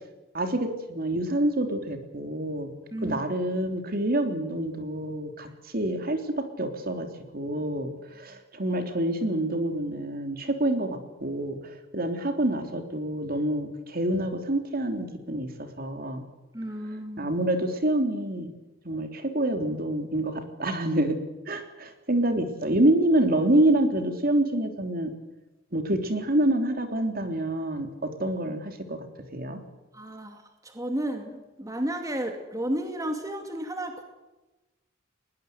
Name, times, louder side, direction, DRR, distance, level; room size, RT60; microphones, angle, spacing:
voice 1, 0.3-2.7 3.0-5.5 5.7-6.2 6.6-7.1 7.3-7.9 8.2-16.2 17.2-18.5 18.9-21.2 21.5-25.1 25.7-27.9 28.2-29.0 29.3-29.6, right 1 dB, 50° right, 6 dB, 3.4 m, -27 dB
voice 2, 16.5-17.3 29.9-30.4 30.6-34.0, right 1 dB, 20° right, 5 dB, 2.4 m, -32 dB
21.0 x 20.5 x 8.1 m, 1.1 s
head